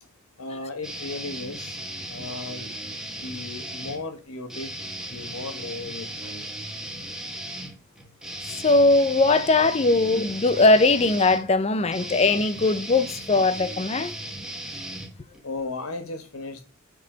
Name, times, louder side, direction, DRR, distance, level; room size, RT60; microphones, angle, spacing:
voice 1, 0.4-1.8 2.1-2.7 3.2-4.7 5.1-6.5 15.4-16.6, left 3 dB, 80° left, 1.3 m, -35 dB
sound 1, 0.8-4.0 4.5-15.6, right 1 dB, 5° right, 1.2 m, -36 dB
voice 2, 8.6-14.1, left 3 dB, 30° left, 0.5 m, -20 dB
9.3 x 3.9 x 4.9 m
head